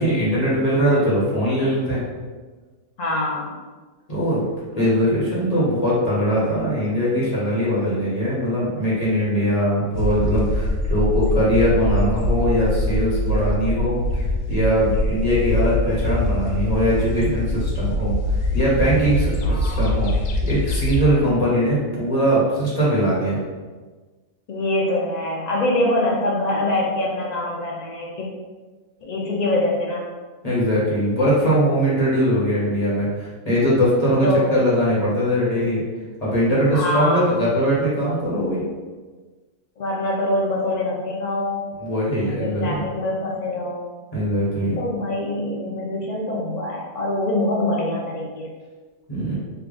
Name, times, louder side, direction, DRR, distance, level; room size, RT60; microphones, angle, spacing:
voice 1, 0.0-2.0 4.1-4.4 4.7-14.0 14.5-18.2 18.5-20.1 20.4-23.4 30.4-35.8 36.2-38.7 41.8-42.8 44.1-44.8 49.1-49.4, equal, 30° left, -8 dB, 1.1 m, -21 dB
voice 2, 3.0-3.5 19.4-19.9 24.5-28.3 29.0-30.0 34.2-34.4 36.7-37.3 39.8-41.6 42.2-43.9 44.8-48.5, left 1 dB, 70° left, -3 dB, 0.4 m, -24 dB
sound 1, 9.9-21.1, left 1 dB, 90° left, 1.0 m, -23 dB
3.3 x 2.3 x 3.7 m, 1.3 s
omnidirectional pair, 1.4 m